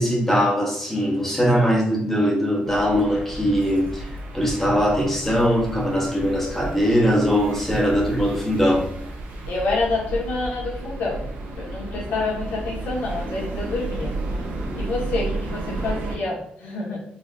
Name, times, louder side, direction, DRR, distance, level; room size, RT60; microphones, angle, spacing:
voice 1, 0.0-8.9, equal, 10° left, -2 dB, 0.9 m, -21 dB
sound 1, 2.6-16.2, right 2 dB, 90° right, 0.9 m, -32 dB
voice 2, 9.5-11.2 11.5-14.1 14.8-17.0, left 3 dB, 75° left, -4 dB, 1.5 m, -27 dB
4.0 x 3.0 x 2.5 m, 0.65 s
cardioid pair, 155°, 3 cm